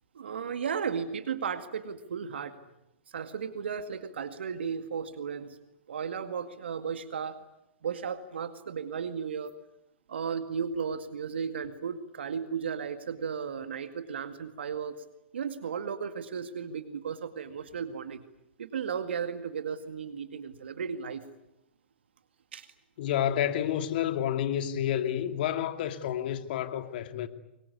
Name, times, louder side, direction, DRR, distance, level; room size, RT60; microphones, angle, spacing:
voice 1, 0.1-2.6 3.1-5.6 5.9-7.4 7.8-9.5 10.1-15.0 15.3-18.2 18.6-21.2 22.5-22.7, right 6 dB, 75° right, 2.0 m, -35 dB
voice 2, 23.0-27.3, left 10 dB, 55° left, 2.6 m, -29 dB
26.0 x 23.0 x 9.8 m
hypercardioid pair, 110°, 6 cm